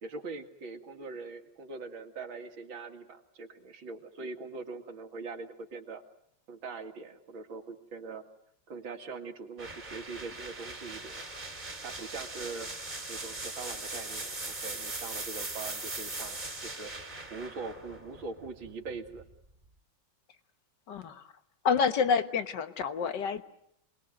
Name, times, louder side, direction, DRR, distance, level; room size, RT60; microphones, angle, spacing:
voice 1, 0.0-6.0 6.5-8.2 8.7-11.3 11.8-12.7 13.1-16.9 17.3-19.2, right 4 dB, 65° right, 6 dB, 2.7 m, -42 dB
sound 1, 9.6-19.3, right 2 dB, 20° right, 2.5 m, -40 dB
voice 2, 20.9-21.2 21.6-23.4, left 6 dB, 60° left, 10 dB, 1.8 m, -28 dB
28.0 x 20.5 x 7.8 m, 0.76 s
omnidirectional pair, 2.3 m